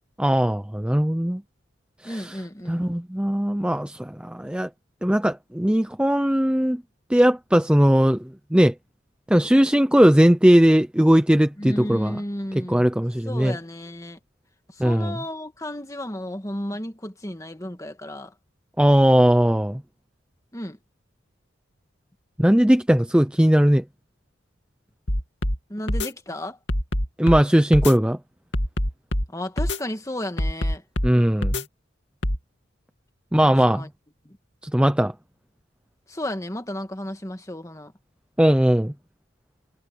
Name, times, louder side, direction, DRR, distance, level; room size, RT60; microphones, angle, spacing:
voice 1, 0.2-1.4 2.0-4.7 5.0-6.8 7.1-8.2 8.5-8.7 9.3-12.2 12.5-13.6 14.8-15.2 18.8-19.8 22.4-23.8 27.2-28.2 31.0-31.6 33.3-33.9 34.6-35.1 38.4-38.9, equal, 5° right, 0.5 m, -19 dB
voice 2, 2.0-2.8 11.6-12.8 13.2-14.2 14.8-18.3 20.5-20.8 25.7-26.6 29.3-30.8 33.4-33.9 36.1-37.9, left 1 dB, 15° left, 1.9 m, -33 dB
sound 1, 25.1-25.6 25.9-26.1 26.7-27.4 27.7-27.9 28.5-29.3 29.6-29.8 30.4-31.1 31.4-31.6 32.2-32.4, left 1 dB, 60° left, 2.8 m, -24 dB
head